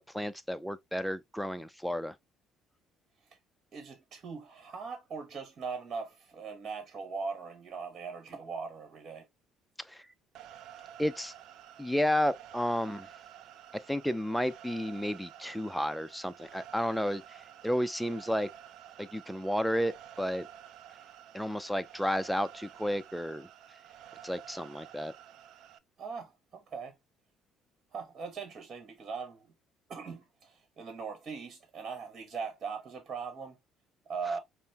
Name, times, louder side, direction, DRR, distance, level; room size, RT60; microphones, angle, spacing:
voice 1, 0.0-2.2 9.8-10.1 11.0-11.3 11.8-13.1 13.9-18.5 19.0-20.5 21.3-23.5 24.2-25.1, equal, ahead, 0.4 m, -32 dB
voice 2, 3.7-9.3 26.0-26.9 27.9-29.5 29.9-33.6 34.1-34.4, right 5 dB, 45° right, 1.2 m, -40 dB
sound 1, 10.3-25.8, right 10 dB, 70° right, 0.4 m, -51 dB
5.4 x 2.1 x 2.8 m
supercardioid pair, 90°, 0 cm